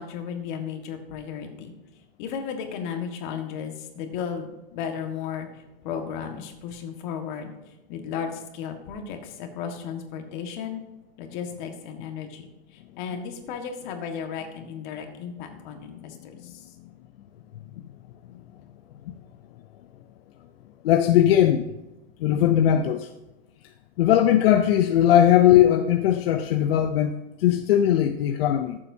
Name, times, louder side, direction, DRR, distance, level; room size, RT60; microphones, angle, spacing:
voice 1, 0.0-1.7 2.2-7.5 7.9-10.8 11.2-12.4 12.7-16.6, left 7 dB, 55° left, 1.7 m, -34 dB
voice 2, 20.8-21.6 22.2-23.1 24.0-28.8, left 11 dB, 80° left, 0.7 m, -19 dB
14.0 x 7.4 x 2.8 m
supercardioid pair, 150°, 29 cm